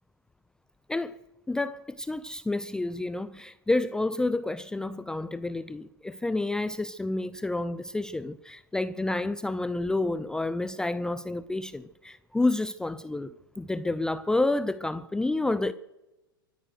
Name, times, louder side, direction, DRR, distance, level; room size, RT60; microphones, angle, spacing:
voice 1, 1.5-15.7, left 2 dB, 5° left, 0.4 m, -29 dB
24.5 x 9.1 x 6.4 m
figure-of-eight pair, 95°, 12 cm